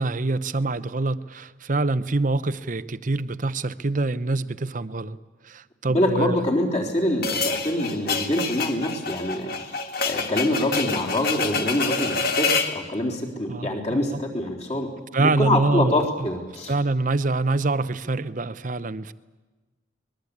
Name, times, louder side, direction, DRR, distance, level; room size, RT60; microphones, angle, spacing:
voice 1, 0.0-5.2 5.4-6.5 13.5-14.2 15.1-16.1 16.7-19.1, right 2 dB, 45° right, 14 dB, 0.7 m, -25 dB
voice 2, 5.9-14.9 15.2-16.7, left 1 dB, 35° left, 0 dB, 3.9 m, -25 dB
sound 1, 7.2-12.8, left 4 dB, 50° left, 1.8 m, -27 dB
24.0 x 21.0 x 8.6 m, 1.2 s
head